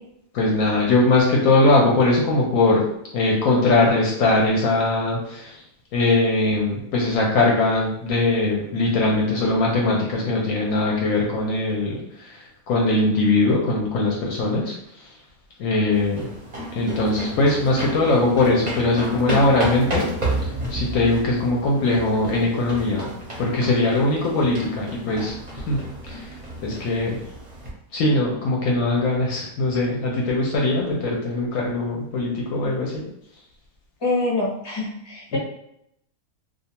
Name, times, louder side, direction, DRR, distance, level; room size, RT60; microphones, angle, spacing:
voice 1, 0.3-2.8 3.1-5.6 5.9-15.1 15.6-16.3 16.7-20.1 20.4-23.1 23.4-25.8 26.0-26.4 26.6-27.2 27.9-33.0 35.3-35.4, left 2 dB, 70° left, -2 dB, 0.9 m, -21 dB
sound 1, 15.9-27.7, right 1 dB, 40° right, 0.6 m, -32 dB
voice 2, 34.0-35.4, left 2 dB, 25° left, -5 dB, 0.6 m, -25 dB
2.4 x 2.3 x 2.8 m, 0.78 s
omnidirectional pair, 1.6 m